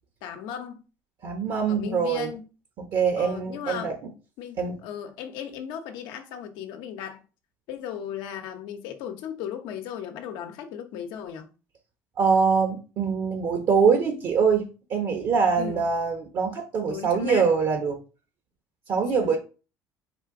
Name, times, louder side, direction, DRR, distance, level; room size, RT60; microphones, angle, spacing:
voice 1, 0.2-0.8 1.7-2.5 3.2-3.9 4.4-7.2 7.7-11.5 15.6-15.9 16.9-17.5 19.1-19.4, left 9 dB, 80° left, 0.8 m, -36 dB
voice 2, 1.2-2.3 2.8-3.9 4.6-4.8 12.2-18.0 18.9-19.4, right 5 dB, 60° right, 1.0 m, -23 dB
4.4 x 2.4 x 4.7 m
supercardioid pair, 85°, 8 cm